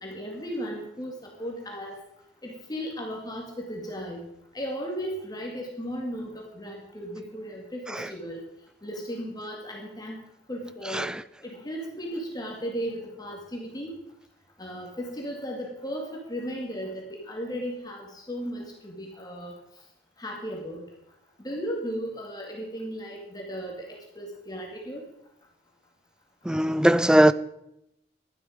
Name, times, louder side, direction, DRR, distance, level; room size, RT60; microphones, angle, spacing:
voice 1, 0.0-2.0 2.4-4.2 4.5-8.4 8.8-10.2 10.5-11.1 11.4-13.9 14.6-19.5 20.2-20.8 21.4-25.0, equal, 20° left, 2.2 m, -35 dB
voice 2, 10.9-11.2 26.4-27.3, right 1 dB, 5° right, 0.4 m, -20 dB
12.5 x 11.5 x 5.1 m
head